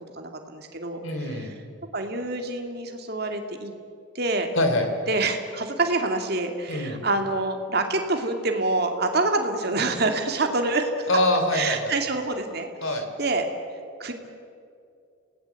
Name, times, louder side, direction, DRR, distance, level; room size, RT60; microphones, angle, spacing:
voice 1, 0.1-1.6 1.9-3.7 4.1-4.5 5.1-11.1 11.5-13.5 14.0-14.1, right 2 dB, 50° right, 4 dB, 2.4 m, -26 dB
voice 2, 1.0-1.5 4.5-4.9 6.7-7.0 11.1-11.9 12.8-13.1, left 1 dB, 75° left, 6 dB, 3.4 m, -24 dB
28.5 x 18.0 x 8.3 m, 2.4 s
head